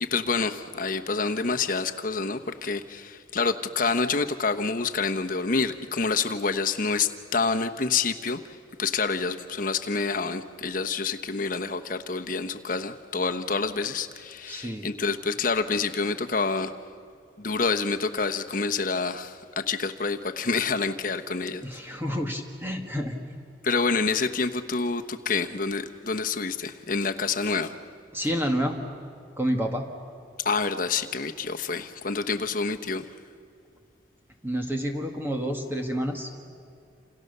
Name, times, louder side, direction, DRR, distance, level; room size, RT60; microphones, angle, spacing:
voice 1, 0.0-8.4 8.8-16.7 17.4-21.6 23.6-27.7 30.4-33.0, left 4 dB, 45° left, 7 dB, 1.1 m, -27 dB
voice 2, 14.5-14.9 21.6-23.2 28.1-28.8 29.4-29.8 34.4-36.3, equal, 10° right, 3 dB, 1.7 m, -29 dB
28.5 x 28.0 x 6.8 m, 2.4 s
head